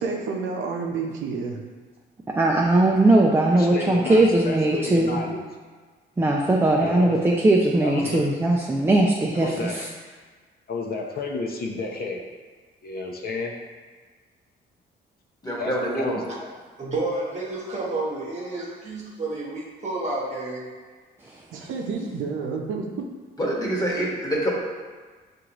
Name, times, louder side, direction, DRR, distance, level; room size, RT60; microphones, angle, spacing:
voice 1, 0.0-1.6 21.5-23.1, right 4 dB, 75° right, 1 dB, 0.6 m, -29 dB
voice 2, 2.4-5.2 6.2-9.9, right 2 dB, 10° right, -2 dB, 0.4 m, -19 dB
voice 3, 3.5-5.4 6.8-7.2 7.8-8.3 9.3-9.8 10.7-12.3 12.8-13.5 15.6-16.5, left 3 dB, 50° left, 0 dB, 0.7 m, -31 dB
voice 4, 15.4-16.2 23.4-24.0 24.3-24.5, right 1 dB, 20° left, -5 dB, 1.3 m, -25 dB
voice 5, 16.8-20.7, right 2 dB, 35° right, -4 dB, 1.2 m, -30 dB
6.1 x 2.6 x 2.9 m, 1.4 s
cardioid pair, 90°, 20 cm